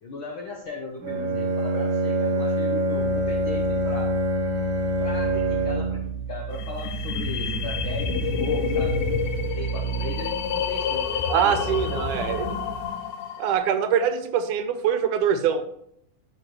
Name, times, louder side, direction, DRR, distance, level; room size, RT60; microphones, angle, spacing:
voice 1, 0.0-4.1 5.0-9.0 9.5-11.6, left 3 dB, 70° left, 0 dB, 1.2 m, -37 dB
Bowed string instrument, 1.0-6.1, right 1 dB, 55° right, 2.0 m, -25 dB
sound 1, 3.0-12.9, right 8 dB, 70° right, 1.5 m, -34 dB
sound 2, 6.5-13.5, left 7 dB, 85° left, 2.3 m, -29 dB
voice 2, 11.3-12.5 13.4-15.6, right 8 dB, 85° right, 9 dB, 2.2 m, -23 dB
12.0 x 6.7 x 3.1 m, 0.71 s
omnidirectional pair, 3.5 m